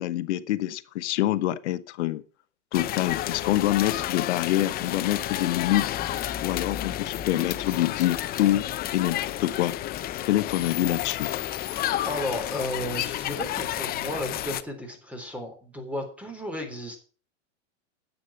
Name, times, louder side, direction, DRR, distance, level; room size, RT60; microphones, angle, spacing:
voice 1, 0.0-2.2 2.7-5.9 6.4-8.6 8.9-9.8 10.3-11.3, left 14 dB, 70° left, 14 dB, 1.2 m, -26 dB
sound 1, 2.7-14.6, left 13 dB, 25° left, 0.6 m, -31 dB
voice 2, 12.0-17.0, left 1 dB, 5° right, 5 dB, 3.5 m, -33 dB
10.0 x 8.3 x 7.1 m, 0.40 s
supercardioid pair, 135°, 36 cm